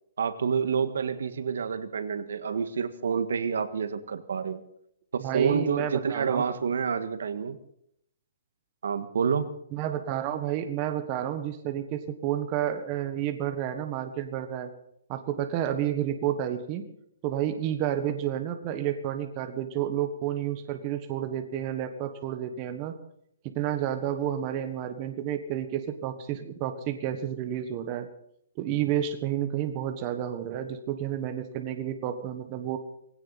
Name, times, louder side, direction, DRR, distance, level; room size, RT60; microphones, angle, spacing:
voice 1, 0.2-4.6 5.1-7.6 8.8-9.5, right 6 dB, 75° right, 10 dB, 1.6 m, -28 dB
voice 2, 5.2-6.4 9.7-14.7 15.1-16.8 17.2-22.9 23.5-28.1 28.6-32.8, right 10 dB, 25° right, 7 dB, 1.3 m, -30 dB
19.0 x 17.0 x 4.1 m, 0.73 s
hypercardioid pair, 170°, 0 cm